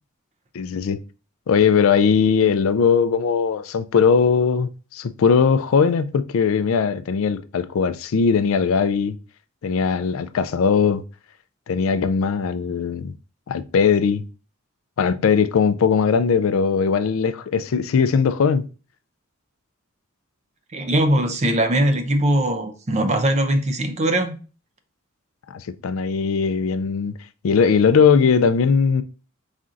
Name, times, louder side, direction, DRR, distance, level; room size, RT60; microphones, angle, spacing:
voice 1, 0.5-1.0 1.5-9.2 9.6-11.0 11.7-13.1 13.5-14.2 15.0-18.7 25.5-27.1 27.4-29.0, left 6 dB, 75° left, 0.4 m, -19 dB
voice 2, 20.7-24.4, right 1 dB, 30° right, 0.5 m, -20 dB
4.2 x 3.8 x 2.4 m
head